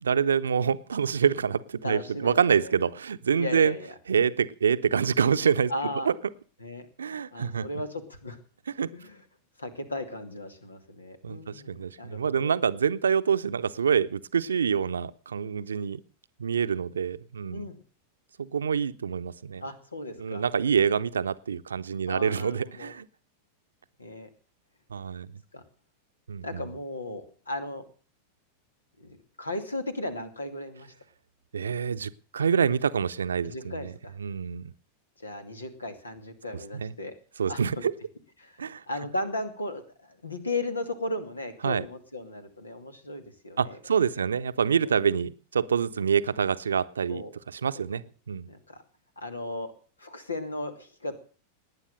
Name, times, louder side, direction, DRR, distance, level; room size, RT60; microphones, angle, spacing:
voice 1, 0.0-3.8 4.1-5.7 6.1-6.2 7.0-7.7 8.8-8.9 11.2-16.0 16.4-17.7 18.4-19.6 20.2-23.1 24.9-25.3 26.3-26.7 31.5-33.9 34.2-34.7 36.7-36.9 37.4-37.9 38.6-38.8 41.6-41.8 43.6-48.5, right 7 dB, 70° right, 14 dB, 0.8 m, -26 dB
voice 2, 1.8-2.7 3.4-3.9 5.7-6.1 6.6-6.9 7.3-8.4 8.9-9.2 9.6-12.6 17.5-17.8 19.6-20.4 22.1-22.9 24.0-24.3 25.5-25.6 26.4-27.8 29.0-30.9 33.4-34.1 35.2-37.1 37.5-37.9 38.4-43.8 44.8-45.0 47.1-47.3 48.5-48.8 49.2-49.7 50.0-51.1, left 2 dB, 80° left, 10 dB, 2.4 m, -36 dB
19.0 x 9.8 x 6.6 m, 0.41 s
figure-of-eight pair, 90°, 0 cm